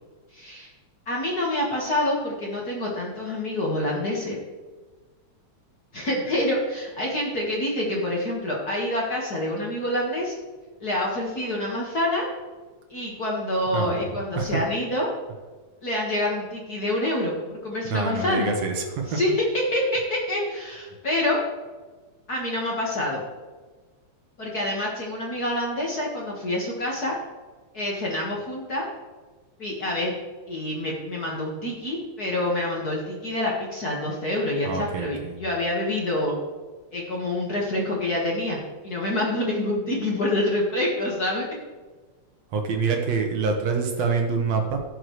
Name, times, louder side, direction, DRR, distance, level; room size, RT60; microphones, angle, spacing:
voice 1, 0.3-0.7 1.1-4.4 5.9-10.3 10.8-12.3 12.9-15.1 15.8-18.5 19.1-21.4 22.3-23.2 24.4-27.1 27.7-28.9 29.6-30.2 30.5-36.3 36.9-38.6 38.8-41.5, left 1 dB, 40° left, -3 dB, 1.7 m, -27 dB
voice 2, 13.7-14.1 14.4-14.6 17.9-19.2 34.7-35.3 42.5-44.8, right 4 dB, 70° right, 3 dB, 2.2 m, -26 dB
17.0 x 6.5 x 3.1 m, 1.3 s
omnidirectional pair, 3.3 m